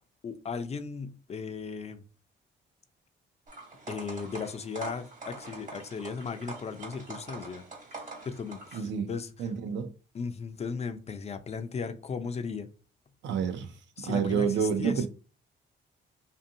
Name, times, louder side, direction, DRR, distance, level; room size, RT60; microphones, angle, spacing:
voice 1, 0.2-2.0 3.9-7.6 8.0-9.5 10.1-12.7 14.0-15.1, left 5 dB, 35° left, 0.4 m, -36 dB
sound 1, 3.5-8.8, right 3 dB, 40° right, 1.1 m, -44 dB
voice 2, 8.7-9.1 9.4-9.9 13.2-13.7 14.0-15.1, right 7 dB, 65° right, 0.5 m, -28 dB
2.6 x 2.6 x 2.6 m
cardioid pair, 90°, 20 cm